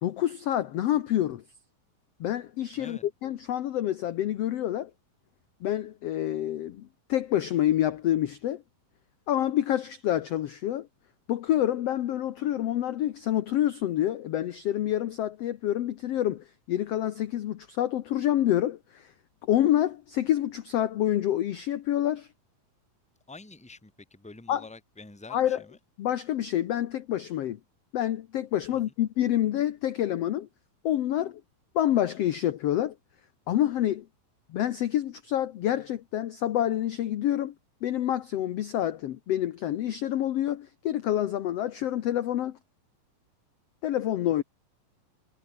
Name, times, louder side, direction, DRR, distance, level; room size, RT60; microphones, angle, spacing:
voice 1, 0.0-1.4 2.2-4.9 5.6-8.6 9.3-10.9 11.3-19.1 19.5-22.3 24.5-24.6 25.3-25.6 26.0-27.6 27.9-30.5 30.8-31.4 31.7-32.9 33.5-34.0 34.5-37.5 37.8-42.6 43.8-44.4, left 12 dB, 70° left, 1.5 m, -27 dB
voice 2, 2.7-3.0 23.3-25.8 28.7-28.8, left 3 dB, ahead, 1.9 m, -47 dB
omnidirectional pair, 4.1 m